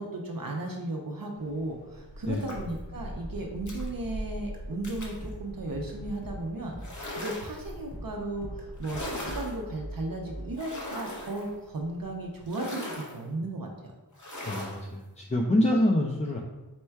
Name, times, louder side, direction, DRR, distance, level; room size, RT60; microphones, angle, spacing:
voice 1, 0.0-13.9, right 2 dB, 55° right, 1 dB, 0.6 m, -35 dB
sound 1, 1.4-12.5, equal, 65° left, 0.7 m, -44 dB
sound 2, 2.3-2.8 3.7-3.9 4.8-5.2 6.8-7.7 8.8-9.6 10.5-11.5 12.5-13.2 14.1-14.8, left 1 dB, 45° left, 1.0 m, -39 dB
sound 3, 4.3-7.5 7.9-10.6, right 1 dB, 20° right, 0.7 m, -43 dB
voice 2, 14.4-16.4, left 1 dB, 20° left, 0 dB, 0.3 m, -26 dB
4.3 x 2.2 x 4.4 m, 1.1 s
wide cardioid pair, 75°, 41 cm